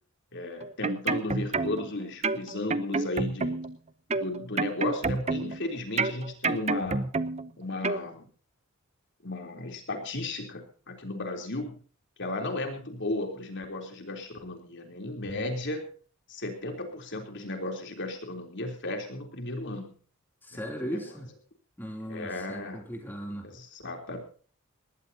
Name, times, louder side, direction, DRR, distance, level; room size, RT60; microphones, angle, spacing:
voice 1, 0.3-3.6 4.2-7.1 7.6-8.3 9.2-11.8 12.2-15.9 16.3-19.9 20.5-21.0 22.1-22.8 23.4-24.2, left 2 dB, 55° left, 3 dB, 3.5 m, -35 dB
sound 1, 0.6-1.9 2.2-3.8 4.1-5.6 6.0-7.5 7.8-8.0, right 3 dB, 30° right, 0.8 m, -29 dB
voice 2, 20.4-21.3 21.8-23.5, equal, 10° left, 2 dB, 3.1 m, -37 dB
21.0 x 18.5 x 2.9 m, 0.42 s
head